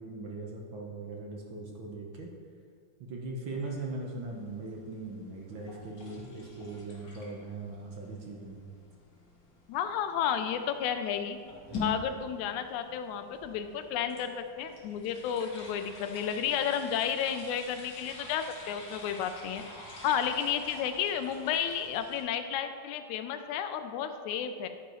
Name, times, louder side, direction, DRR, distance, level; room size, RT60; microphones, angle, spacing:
voice 1, 0.0-2.3 3.1-8.6, right 2 dB, 70° right, -1 dB, 1.2 m, -40 dB
sound 1, 3.6-22.2, left 3 dB, 40° left, 2.0 m, -46 dB
voice 2, 9.7-11.4 11.8-19.6 20.0-24.7, left 8 dB, 80° left, 8 dB, 1.9 m, -32 dB
11.0 x 10.0 x 3.1 m, 2.1 s
omnidirectional pair, 3.6 m